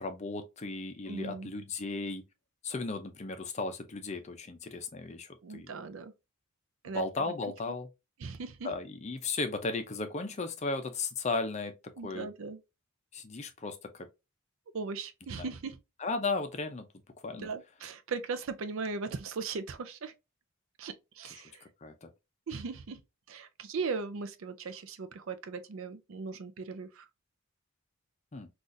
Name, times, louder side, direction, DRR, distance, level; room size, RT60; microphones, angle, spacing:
voice 1, 0.0-2.2 2.6-5.7 6.9-7.9 8.6-11.7 12.0-12.3 13.1-14.1 15.4-15.5 16.0-16.9 17.2-17.5 21.8-22.1 28.3-28.5, left 3 dB, 30° left, 0.5 m, -35 dB
voice 2, 1.0-1.5 5.4-6.1 6.8-7.0 8.2-8.7 12.0-12.6 14.7-15.8 17.4-20.1 20.8-21.6 22.5-23.0 23.3-27.1, right 4 dB, 60° right, 0.4 m, -38 dB
3.9 x 2.4 x 2.5 m
head